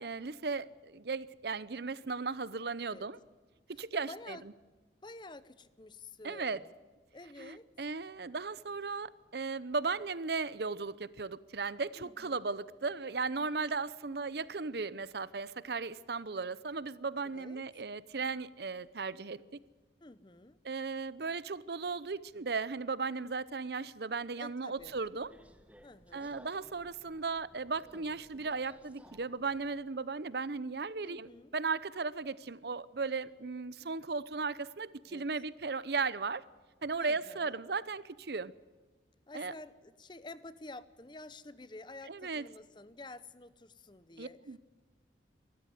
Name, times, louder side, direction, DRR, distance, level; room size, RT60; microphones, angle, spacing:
voice 1, 0.0-3.2 3.8-4.4 6.2-6.6 7.4-19.4 20.6-25.3 26.1-36.4 36.8-38.5 39.3-39.5 42.1-42.4 44.2-44.6, right 4 dB, 60° right, 0.7 m, -36 dB
voice 2, 3.9-4.4 5.0-6.7 7.1-7.7 12.0-12.6 17.2-17.6 20.0-20.6 24.4-24.9 25.8-26.4 31.0-31.5 35.1-35.3 37.0-37.6 39.3-44.4, left 2 dB, 25° left, 0.8 m, -50 dB
Subway metro underground, 24.8-29.9, right 1 dB, 10° right, 1.1 m, -59 dB
24.5 x 13.5 x 9.4 m
head